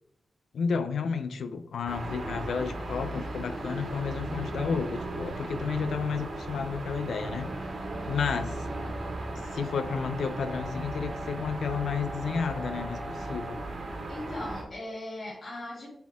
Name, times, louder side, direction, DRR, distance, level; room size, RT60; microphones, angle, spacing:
voice 1, 0.5-7.5 8.1-8.6 9.5-13.6, left 5 dB, 90° left, 0.6 m, -31 dB
sound 1, 1.9-14.6, right 2 dB, 65° right, 2.2 m, -37 dB
sound 2, 7.0-14.5, right 1 dB, 5° right, 0.9 m, -42 dB
voice 2, 14.1-15.9, left 1 dB, 45° left, 2.9 m, -39 dB
8.0 x 4.3 x 3.6 m
wide cardioid pair, 105°, 0 cm